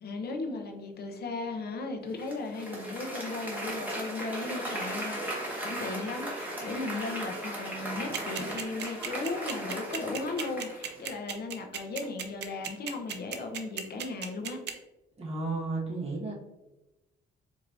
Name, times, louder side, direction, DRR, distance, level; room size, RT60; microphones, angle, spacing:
voice 1, 0.0-14.6, left 3 dB, 55° left, 4 dB, 0.7 m, -36 dB
Applause, 2.2-11.1, right 1 dB, 10° right, 1.4 m, -37 dB
sound 1, 8.1-14.7, right 8 dB, 60° right, 0.5 m, -35 dB
voice 2, 15.2-16.3, right 3 dB, 30° right, -4 dB, 1.4 m, -33 dB
4.6 x 2.8 x 2.6 m, 1.0 s
cardioid pair, 90°, 20 cm